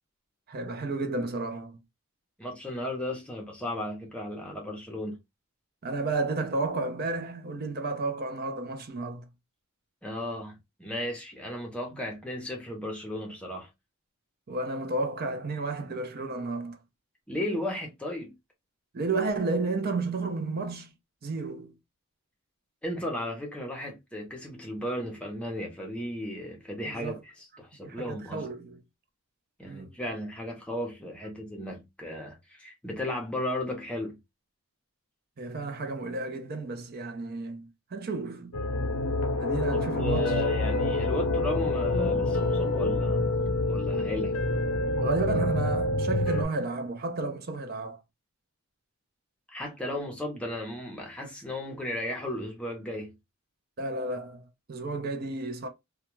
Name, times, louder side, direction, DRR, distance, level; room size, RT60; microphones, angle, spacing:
voice 1, 0.5-1.8 5.8-9.3 14.5-16.8 18.9-20.9 21.2-21.7 26.9-27.2 27.8-28.8 29.6-30.0 35.4-38.6 39.4-40.2 45.0-48.0 53.8-55.7, right 3 dB, 45° right, 0.5 m, -32 dB
voice 2, 2.4-5.2 10.0-10.5 10.8-13.7 17.3-18.3 22.8-28.5 29.6-34.2 39.7-43.4 43.7-44.4 49.5-53.1, left 1 dB, 5° left, 0.7 m, -35 dB
sound 1, 38.5-46.4, left 2 dB, 75° left, 0.5 m, -27 dB
2.3 x 2.2 x 2.9 m
head